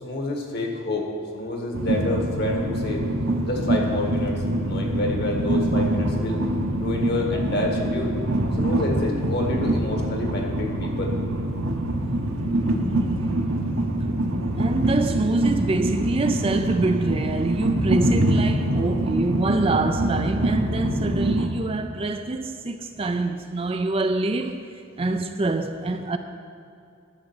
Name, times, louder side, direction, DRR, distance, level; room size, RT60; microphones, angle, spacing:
voice 1, 0.0-3.1 3.4-6.4 6.8-8.1 8.5-11.1, left 2 dB, 50° left, 1.7 m, -28 dB
Train, 1.7-21.5, right 1 dB, 70° right, 1.0 m, -24 dB
voice 2, 14.6-24.6 25.0-26.2, right 2 dB, 25° right, 0.4 m, -25 dB
11.5 x 7.3 x 7.1 m
head